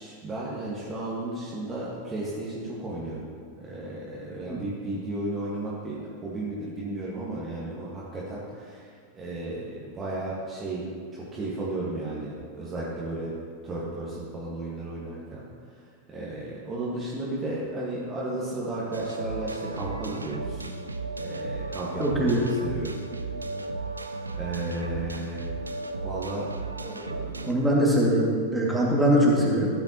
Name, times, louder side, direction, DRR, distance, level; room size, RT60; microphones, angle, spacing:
voice 1, 0.0-3.2 3.6-13.3 13.6-15.4 16.1-20.7 21.2-23.0 24.3-25.5 26.0-26.5 26.8-27.5, right 2 dB, 20° right, -6 dB, 1.6 m, -34 dB
sound 1, 18.9-27.6, right 3 dB, 80° right, 0.5 m, -35 dB
voice 2, 22.0-22.5 27.5-29.7, right 1 dB, 5° right, -5 dB, 2.2 m, -22 dB
14.5 x 8.0 x 3.0 m, 2.1 s
figure-of-eight pair, 90°, 0 cm